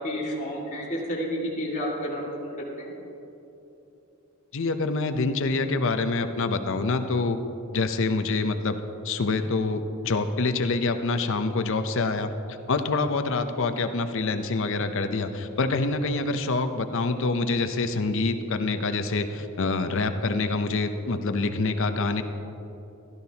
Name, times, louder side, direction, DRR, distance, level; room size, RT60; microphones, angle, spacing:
voice 1, 0.0-2.9, equal, 35° left, -5 dB, 2.0 m, -31 dB
voice 2, 4.5-7.4 7.7-8.8 9.0-22.2, left 3 dB, 60° left, 8 dB, 0.6 m, -26 dB
16.0 x 12.5 x 2.8 m, 2.9 s
head